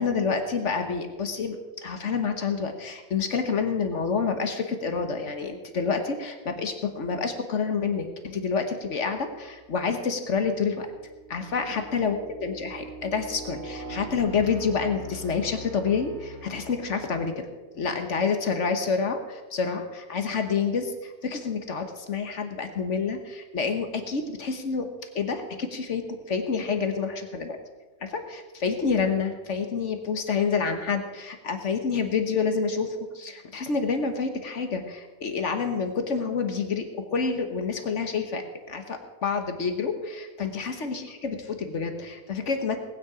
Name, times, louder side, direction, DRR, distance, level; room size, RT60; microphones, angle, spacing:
voice 1, 0.0-1.6 1.8-10.9 11.3-17.5 17.7-24.9 25.1-27.6 28.0-42.8, left 5 dB, 70° left, 6 dB, 1.5 m, -28 dB
sound 1, 9.6-9.9 10.5-17.4, equal, 65° right, 4.6 m, -42 dB
18.5 x 9.5 x 5.0 m, 1.2 s
omnidirectional pair, 1.3 m